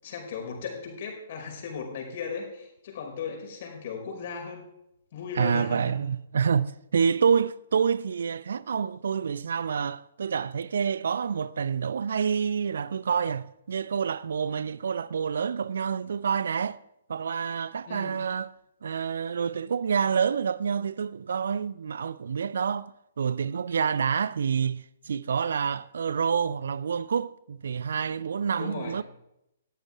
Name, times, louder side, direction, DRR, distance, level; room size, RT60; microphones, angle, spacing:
voice 1, 0.0-4.6 5.1-6.0 17.9-18.2 28.6-29.0, left 5 dB, 45° left, 5.2 m, -37 dB
voice 2, 5.4-16.8 17.1-18.5 18.8-22.9 23.2-29.0, right 6 dB, 60° right, 0.5 m, -28 dB
18.5 x 15.0 x 3.6 m
figure-of-eight pair, 120°, 0 cm